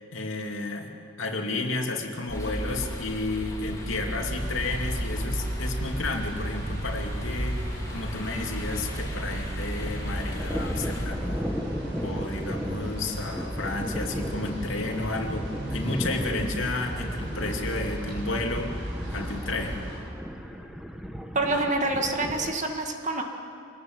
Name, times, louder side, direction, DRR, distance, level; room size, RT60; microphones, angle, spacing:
voice 1, 0.1-0.9 1.2-7.6 7.9-11.5 12.0-18.7 19.1-19.8, left 2 dB, 85° left, 2 dB, 2.5 m, -32 dB
sound 1, 2.3-11.1, equal, 20° left, 3.3 m, -34 dB
sound 2, 4.3-20.0, right 1 dB, 70° right, 7.3 m, -36 dB
Thunder, 8.4-9.3 9.6-22.6, equal, 5° right, 1.2 m, -36 dB
voice 2, 21.3-23.2, right 2 dB, 40° right, 3 dB, 1.9 m, -27 dB
24.5 x 19.5 x 7.9 m, 2.5 s
head